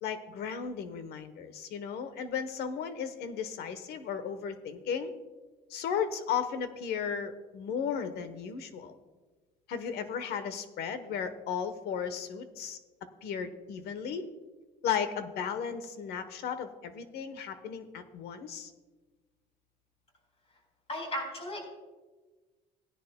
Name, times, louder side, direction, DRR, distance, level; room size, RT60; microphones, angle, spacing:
voice 1, 0.0-5.1 5.7-9.0 9.7-12.8 13.2-14.3 14.8-18.7, left 7 dB, 75° left, 10 dB, 1.0 m, -35 dB
voice 2, 20.9-21.7, equal, 35° left, 1 dB, 3.9 m, -35 dB
17.0 x 10.0 x 2.2 m, 1.3 s
cardioid pair, 110°, 17 cm